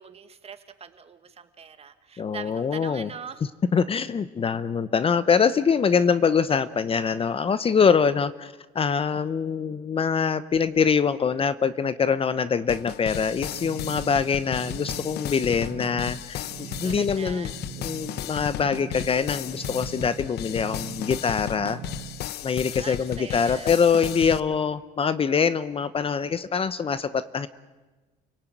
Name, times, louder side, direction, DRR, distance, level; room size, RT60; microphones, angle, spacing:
voice 1, 0.0-3.4 16.4-17.6 22.7-23.8, right 7 dB, 35° right, 9 dB, 1.9 m, -42 dB
voice 2, 2.2-3.1 3.7-17.5 17.8-21.8 22.4-27.5, left 6 dB, 35° left, 15 dB, 0.9 m, -24 dB
sound 1, 12.7-24.4, left 12 dB, 75° left, 0.9 m, -35 dB
sound 2, 13.4-22.2, right 11 dB, 60° right, 1.3 m, -42 dB
29.5 x 17.5 x 9.3 m, 1.2 s
cardioid pair, 110°, 17 cm